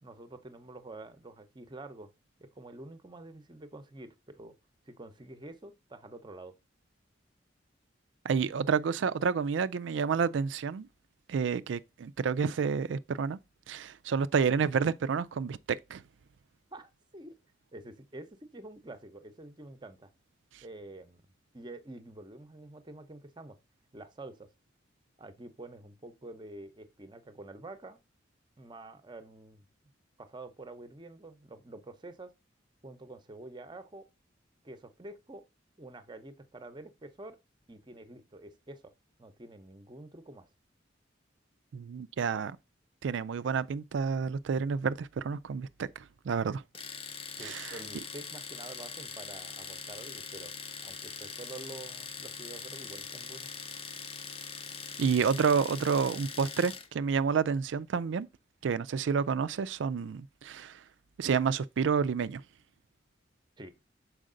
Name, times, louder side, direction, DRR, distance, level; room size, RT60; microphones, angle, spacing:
voice 1, 0.0-2.1 2.4-4.6 4.9-6.5 16.7-17.3 17.7-20.1 20.6-21.2 21.5-23.6 23.9-24.5 25.2-28.0 28.6-29.7 30.2-32.3 32.8-34.1 34.6-35.4 35.8-37.4 37.7-38.9 39.2-40.5 47.4-50.5 50.8-53.5 63.6-63.7, right 2 dB, 25° right, 0.7 m, -47 dB
voice 2, 8.2-10.9 11.3-13.4 13.7-15.6 15.9-16.0 41.7-42.6 43.0-46.6 47.4-47.8 55.0-58.3 58.6-60.8 61.2-62.4, right 6 dB, 80° right, 0.4 m, -29 dB
Domestic sounds home sounds, 46.7-56.9, left 5 dB, 30° left, 0.6 m, -42 dB
6.4 x 4.8 x 3.8 m
head